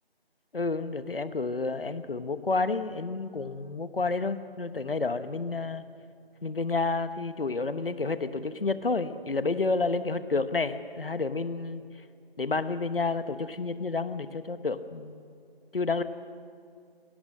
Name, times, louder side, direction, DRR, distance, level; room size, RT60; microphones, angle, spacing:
voice 1, 0.5-5.8 6.4-11.8 12.4-15.2 15.7-16.0, left 3 dB, 65° left, 12 dB, 1.1 m, -30 dB
26.0 x 18.0 x 6.5 m, 2.3 s
figure-of-eight pair, 175°, 31 cm